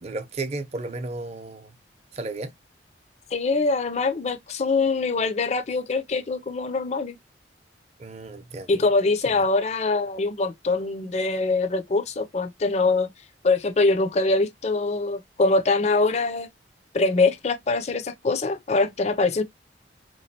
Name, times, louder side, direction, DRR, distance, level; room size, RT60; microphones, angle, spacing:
voice 1, 0.0-1.7 2.1-2.5 8.0-8.8 9.3-9.5, right 2 dB, 35° right, 0.6 m, -34 dB
voice 2, 3.3-7.2 8.7-13.1 13.4-16.5 16.9-19.4, left 3 dB, 40° left, 0.5 m, -23 dB
4.6 x 3.1 x 2.8 m
head